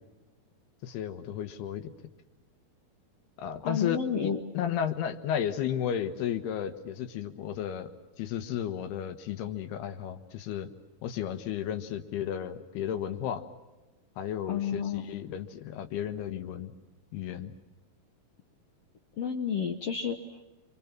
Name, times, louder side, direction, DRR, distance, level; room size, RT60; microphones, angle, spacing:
voice 1, 0.8-1.9 3.4-4.0 4.2-7.9 8.2-10.7 11.0-13.4 14.2-16.7 17.1-17.5, left 9 dB, 90° left, 8 dB, 3.3 m, -33 dB
voice 2, 3.6-4.4 14.5-15.1 19.2-20.4, left 7 dB, 70° left, 4 dB, 1.5 m, -31 dB
28.5 x 26.0 x 6.0 m, 1.1 s
omnidirectional pair, 4.5 m